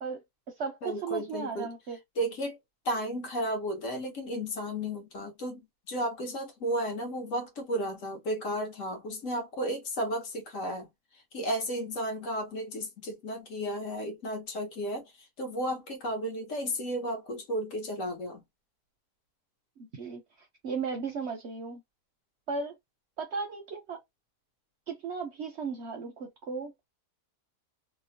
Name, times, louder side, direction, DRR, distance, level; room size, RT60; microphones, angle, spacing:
voice 1, 0.0-2.0 19.8-21.8 22.5-22.8 23.2-24.0 24.9-26.7, right 5 dB, 60° right, 0.7 m, -36 dB
voice 2, 0.8-1.7 2.2-2.6 2.8-10.9 11.1-18.4, equal, 60° left, 1.1 m, -33 dB
2.9 x 2.1 x 2.7 m
omnidirectional pair, 1.6 m